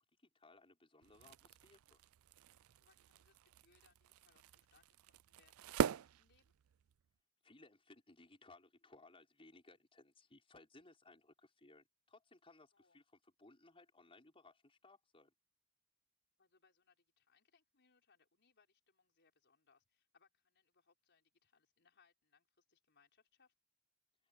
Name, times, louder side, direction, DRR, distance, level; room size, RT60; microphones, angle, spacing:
voice 1, 0.0-2.0 7.4-15.3, left 2 dB, 25° left, 5.9 m, -63 dB
sound 1, 1.0-7.0, right 7 dB, 75° right, 0.4 m, -43 dB
voice 2, 2.8-6.5 12.7-13.0 16.4-23.5, left 5 dB, 55° left, 5.5 m, -75 dB
open air
head